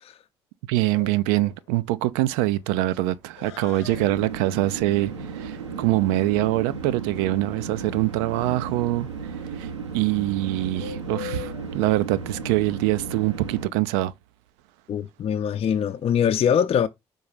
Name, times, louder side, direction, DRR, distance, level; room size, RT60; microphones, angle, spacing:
voice 1, 0.7-9.1 9.6-14.1, right 16 dB, 70° right, 0.5 m, -24 dB
Bird, 0.8-13.8, left 12 dB, 75° left, 0.8 m, -44 dB
sound 1, 3.8-13.7, right 5 dB, 85° right, 1.0 m, -35 dB
voice 2, 14.9-16.9, left 8 dB, 45° left, 0.6 m, -22 dB
5.5 x 4.7 x 5.1 m
figure-of-eight pair, 50°, 15 cm